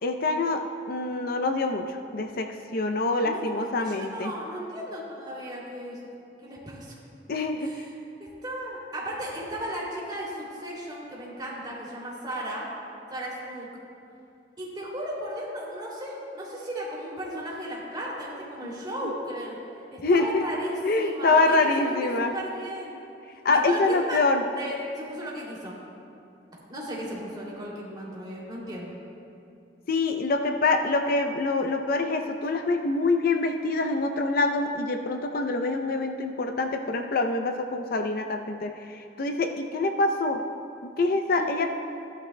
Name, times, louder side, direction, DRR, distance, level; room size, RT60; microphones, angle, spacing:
voice 1, 0.0-4.3 7.3-7.9 18.6-18.7 19.0-19.1 20.0-20.4 20.8-22.3 23.4-24.4 29.9-40.4 40.8-41.7, left 3 dB, 55° left, 5 dB, 0.5 m, -25 dB
voice 2, 3.2-6.0 6.4-6.9 7.6-7.8 8.4-12.7 13.1-13.7 14.6-19.6 19.9-23.0 23.5-25.7 26.7-28.9 41.3-41.5, equal, 25° right, -5 dB, 2.7 m, -35 dB
15.5 x 11.5 x 2.2 m, 2.5 s
head